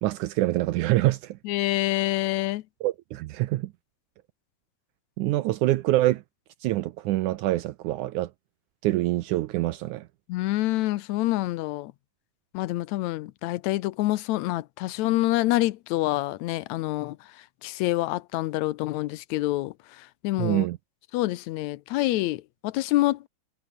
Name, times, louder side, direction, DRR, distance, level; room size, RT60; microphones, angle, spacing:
voice 1, 0.0-1.4 2.8-3.7 5.2-6.2 6.6-8.3 8.8-10.1 20.4-20.8, right 16 dB, 75° right, 2.0 m, -25 dB
voice 2, 1.5-2.6 10.3-11.9 12.5-17.2 17.6-20.7 21.1-23.3, left 17 dB, 75° left, 1.8 m, -27 dB
omnidirectional pair, 3.8 m